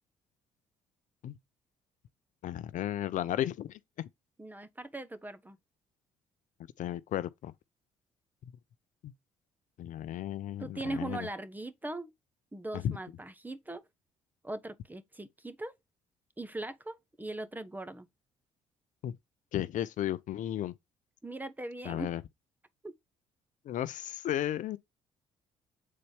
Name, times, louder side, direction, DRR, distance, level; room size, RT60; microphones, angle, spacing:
voice 1, 2.4-3.8 6.8-7.5 9.0-9.1 9.8-11.3 12.7-13.0 19.0-19.1 19.5-20.7 21.8-22.2 23.7-24.8, left 12 dB, 60° left, 0.6 m, -34 dB
voice 2, 4.4-5.6 10.6-12.1 12.5-13.8 14.4-15.8 16.4-18.1 21.2-22.1 22.8-22.9, right 2 dB, 10° right, 1.2 m, -40 dB
7.6 x 4.0 x 3.4 m
hypercardioid pair, 50°, 15 cm